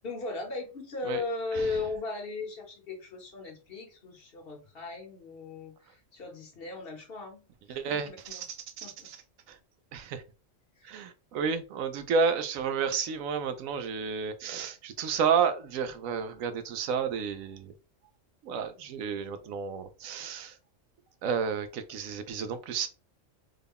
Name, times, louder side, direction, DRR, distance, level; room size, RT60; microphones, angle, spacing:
voice 1, 0.0-8.5 8.8-9.1 10.8-11.1, left 3 dB, 50° left, 1 dB, 1.0 m, -37 dB
voice 2, 7.7-9.2 9.5-9.6 9.9-10.2 10.8-17.7 18.4-20.5 21.2-22.9, right 6 dB, 85° right, 10 dB, 1.0 m, -31 dB
3.7 x 2.1 x 3.5 m, 0.33 s
omnidirectional pair, 1.4 m